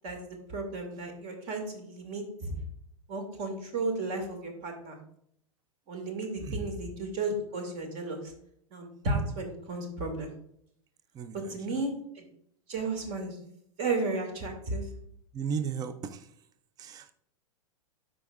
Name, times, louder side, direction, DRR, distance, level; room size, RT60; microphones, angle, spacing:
voice 1, 0.5-2.5 3.1-5.0 5.9-8.2 8.7-10.3 11.3-12.2 12.7-13.4 13.8-14.9, right 2 dB, 45° right, 4 dB, 2.2 m, -33 dB
voice 2, 15.3-16.2 16.8-17.1, right 6 dB, 20° right, 12 dB, 0.5 m, -34 dB
12.0 x 5.0 x 2.4 m, 0.70 s
hypercardioid pair, 105°, 18 cm